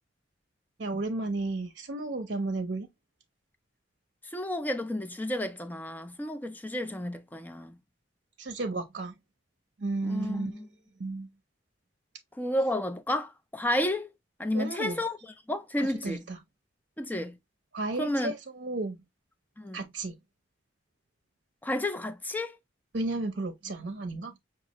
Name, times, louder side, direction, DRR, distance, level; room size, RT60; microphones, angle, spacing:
voice 1, 0.8-2.9 8.4-9.1 9.8-10.5 11.0-11.3 14.5-15.0 15.8-16.4 17.7-19.0 19.7-20.2 22.9-24.3, right 2 dB, 60° right, 0.6 m, -33 dB
voice 2, 4.3-7.7 10.0-10.7 12.4-14.1 14.4-15.2 15.5-16.2 17.0-17.4 18.0-18.3 19.6-19.8 21.6-22.6, left 1 dB, 10° left, 0.4 m, -31 dB
5.9 x 2.4 x 2.9 m
head